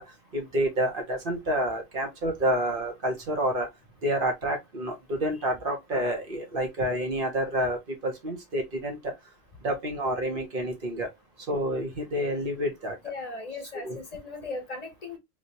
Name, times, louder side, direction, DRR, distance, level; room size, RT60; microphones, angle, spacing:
voice 1, 0.3-3.7 4.0-7.8 8.0-9.0 9.6-11.1 11.5-12.9 13.8-14.0, right 1 dB, 45° right, 1.1 m, -28 dB
voice 2, 13.0-15.2, left 3 dB, 35° left, 1.0 m, -37 dB
3.3 x 2.8 x 2.7 m
omnidirectional pair, 1.3 m